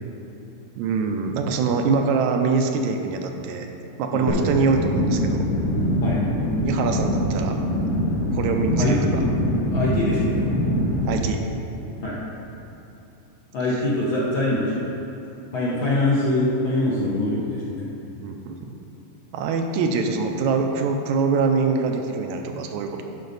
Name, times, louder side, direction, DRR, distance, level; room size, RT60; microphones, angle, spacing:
voice 1, 0.8-3.7 4.0-5.4 6.6-7.6 8.3-9.2 11.1-11.4 12.6-12.7 18.2-18.6 19.3-23.0, right 5 dB, 85° right, 4 dB, 2.0 m, -24 dB
sound 1, 4.3-11.2, equal, 85° left, 3.0 m, -23 dB
voice 2, 9.7-10.4 12.0-12.2 13.5-15.0 15.5-17.9, left 2 dB, 70° left, -6 dB, 1.2 m, -24 dB
12.0 x 5.1 x 4.0 m, 3.0 s
omnidirectional pair, 3.4 m